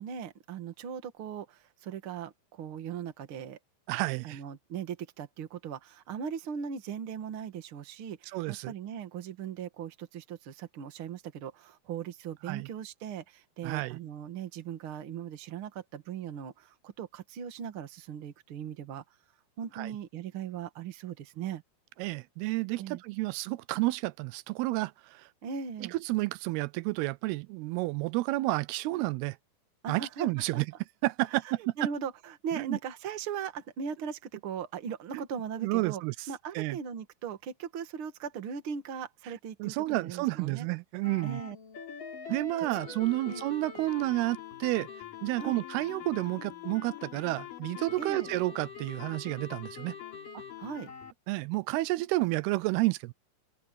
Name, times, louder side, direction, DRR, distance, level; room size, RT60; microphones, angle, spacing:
voice 1, 0.0-3.6 4.2-19.0 19.6-21.6 22.8-23.0 25.4-25.9 29.8-30.3 30.5-30.6 31.3-36.0 36.3-40.7 41.2-41.6 42.8-43.0 43.2-43.4 45.4-45.6 48.0-48.3 50.3-50.9, right 7 dB, 45° right, 1.9 m, -39 dB
voice 2, 3.9-4.4 8.3-8.7 12.5-12.7 13.6-14.0 19.8-19.9 22.0-25.3 25.9-29.4 29.9-30.7 31.0-31.7 32.5-32.8 35.1-35.2 35.6-36.2 36.6-36.8 39.6-41.4 42.3-44.9 45.2-50.0 51.3-53.1, right 19 dB, 90° right, 2.6 m, -30 dB
sound 1, 41.0-51.1, left 8 dB, 60° left, 5.4 m, -44 dB
open air
omnidirectional pair, 4.5 m